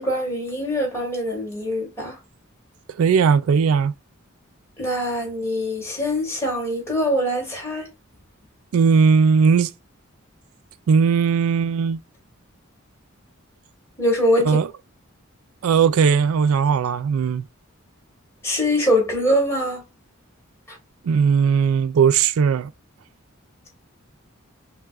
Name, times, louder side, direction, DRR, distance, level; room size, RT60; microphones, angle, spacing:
voice 1, 0.0-2.2 4.8-7.9 14.0-14.6 18.4-19.8 20.7-20.8, equal, 15° left, 1.9 m, -23 dB
voice 2, 3.0-3.9 8.7-9.7 10.9-12.0 14.5-14.7 15.6-17.4 21.0-22.7, right 6 dB, 85° right, 0.4 m, -18 dB
5.7 x 2.2 x 2.3 m
head